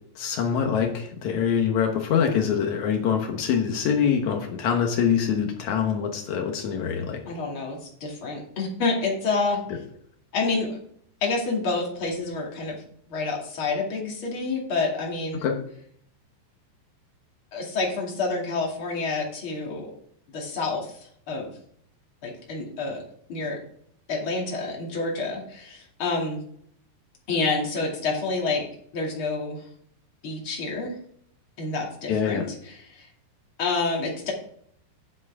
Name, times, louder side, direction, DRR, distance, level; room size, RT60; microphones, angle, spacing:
voice 1, 0.1-7.2 15.4-15.5 32.1-32.5, left 7 dB, 85° left, 3 dB, 1.6 m, -24 dB
voice 2, 7.2-9.6 10.3-10.8 11.2-12.8 13.1-15.4 17.5-19.9 20.3-21.0 21.3-21.5 22.2-23.0 23.3-23.6 24.1-26.4 27.3-28.7 28.9-29.6 30.2-30.9 31.6-33.1 33.6-34.3, left 3 dB, 35° left, -1 dB, 2.5 m, -28 dB
10.5 x 7.9 x 3.6 m, 0.63 s
omnidirectional pair, 5.2 m